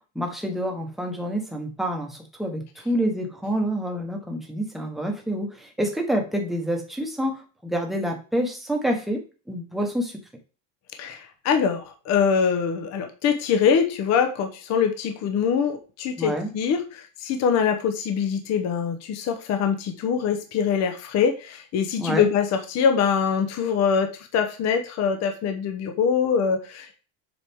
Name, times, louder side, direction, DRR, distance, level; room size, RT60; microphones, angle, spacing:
voice 1, 0.0-9.2 9.5-10.2 16.2-16.5 22.0-22.3, equal, ahead, 1 dB, 1.0 m, -27 dB
voice 2, 11.0-27.0, left 7 dB, 35° left, 6 dB, 0.8 m, -24 dB
7.3 x 4.7 x 3.5 m, 0.35 s
cardioid pair, 170°, 44 cm